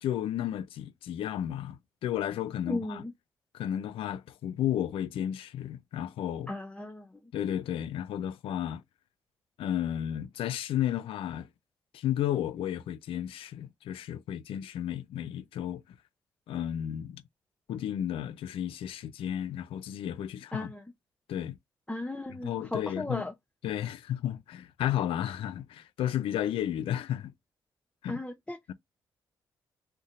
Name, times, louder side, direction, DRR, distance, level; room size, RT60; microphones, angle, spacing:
voice 1, 0.0-3.0 3.5-6.5 7.3-8.8 9.6-11.5 11.9-15.8 16.5-17.2 17.7-20.7 21.3-21.6 22.3-23.2 23.6-27.3 28.0-28.2 28.7-28.8, left 11 dB, 70° left, 0.4 m, -33 dB
voice 2, 2.7-3.1 6.5-7.1 20.5-20.8 21.9-23.3 28.1-28.7, left 2 dB, 10° left, 0.5 m, -36 dB
2.7 x 2.1 x 3.6 m
hypercardioid pair, 45°, 10 cm